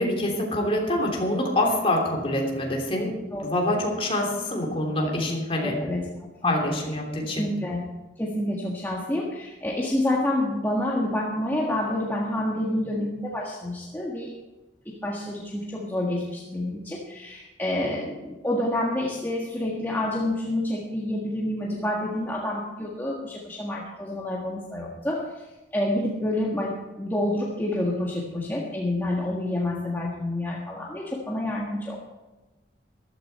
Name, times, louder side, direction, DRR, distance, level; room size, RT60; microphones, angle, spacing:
voice 1, 0.0-3.1 3.4-5.7 6.4-7.5, left 1 dB, 30° left, 0 dB, 3.1 m, -25 dB
voice 2, 5.6-6.0 6.4-6.5 7.2-7.9 8.2-14.3 14.8-25.3 25.7-32.0, left 1 dB, 10° left, -4 dB, 1.6 m, -28 dB
14.0 x 13.0 x 4.3 m, 1.1 s
head